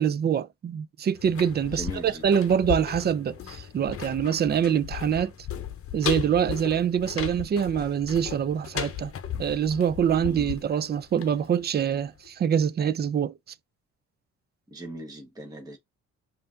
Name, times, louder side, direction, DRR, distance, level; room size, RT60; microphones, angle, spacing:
voice 1, 0.0-5.3 5.9-9.1 9.4-13.3, right 8 dB, 35° right, 0.4 m, -25 dB
sound 1, 1.1-12.0 12.3-12.4, left 10 dB, 50° left, 0.8 m, -36 dB
voice 2, 1.7-2.5 10.1-10.6 14.7-15.8, right 1 dB, 10° right, 1.0 m, -40 dB
5.5 x 2.6 x 3.7 m
cardioid pair, 90°, 30 cm